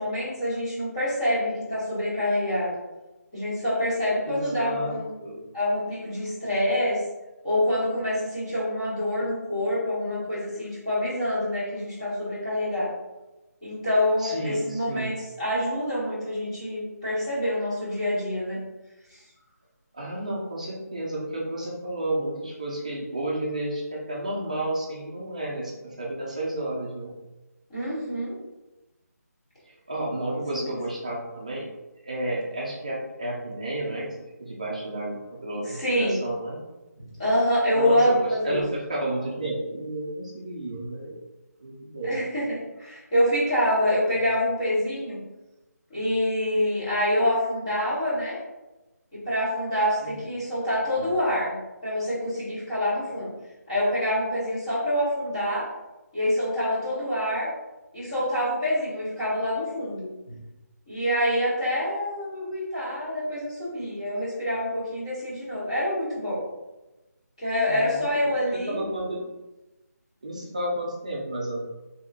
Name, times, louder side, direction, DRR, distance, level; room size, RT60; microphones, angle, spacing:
voice 1, 0.0-2.7 3.3-5.1 5.5-7.0 7.4-12.9 13.6-18.6 19.1-19.2 27.7-28.4 30.5-30.8 35.7-36.2 37.0-38.6 42.0-45.2 45.9-48.4 49.1-51.6 51.8-53.3 53.7-55.7 56.1-57.5 57.9-60.4 60.9-66.4 67.4-68.8, left 1 dB, 20° left, -10 dB, 1.2 m, -26 dB
voice 2, 4.3-4.9 5.2-5.4 14.2-15.1 19.9-27.1 29.6-31.7 32.0-34.1 34.4-36.6 37.7-41.2 41.6-42.1 50.0-50.1 67.7-68.3 68.7-69.2 70.2-71.6, right 1 dB, 25° right, -4 dB, 0.5 m, -31 dB
3.9 x 2.9 x 2.4 m, 1.0 s
figure-of-eight pair, 175°, 9 cm